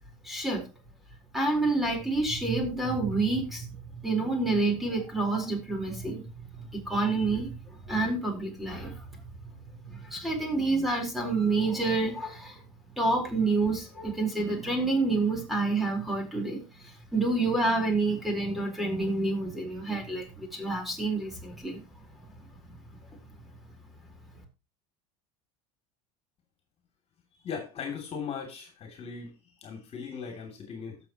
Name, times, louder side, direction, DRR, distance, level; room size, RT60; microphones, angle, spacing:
voice 1, 0.2-0.7 1.3-3.7 4.0-6.3 6.7-7.5 7.8-9.0 9.8-12.6 13.0-21.8, right 3 dB, ahead, 2 dB, 4.3 m, -28 dB
voice 2, 27.4-29.3 29.6-31.0, left 6 dB, 40° left, 5 dB, 3.0 m, -38 dB
17.0 x 7.1 x 3.0 m, 0.26 s
supercardioid pair, 105°, 16 cm